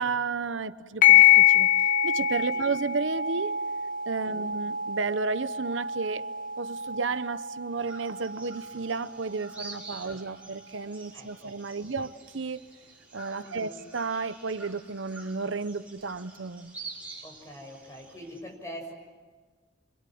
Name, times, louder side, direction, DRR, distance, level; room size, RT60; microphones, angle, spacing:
voice 1, 0.0-1.7 2.0-3.6 4.1-6.2 6.6-12.6 13.1-16.7, right 4 dB, 90° right, 0.9 m, -32 dB
sound 1, 1.0-10.0, left 10 dB, 45° left, 1.8 m, -25 dB
sound 2, 7.8-18.4, right 3 dB, 10° right, 6.9 m, -47 dB
voice 2, 11.1-11.9 13.4-13.8 17.2-18.9, equal, 15° left, 6.8 m, -44 dB
28.5 x 26.0 x 7.8 m
head